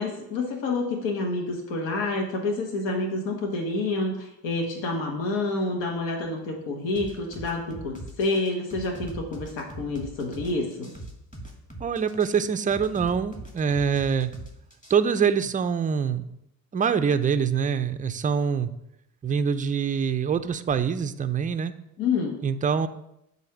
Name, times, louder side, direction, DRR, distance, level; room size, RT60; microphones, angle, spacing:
voice 1, 0.0-10.9 22.0-22.4, left 3 dB, 70° left, 1 dB, 1.3 m, -28 dB
sound 1, 7.0-15.0, right 1 dB, 15° left, 1.8 m, -41 dB
voice 2, 11.8-14.3 14.9-16.2 16.7-18.7 19.2-21.7 22.4-22.9, right 6 dB, 20° right, 10 dB, 0.4 m, -24 dB
7.7 x 2.7 x 5.8 m, 0.83 s
supercardioid pair, 70°, 47 cm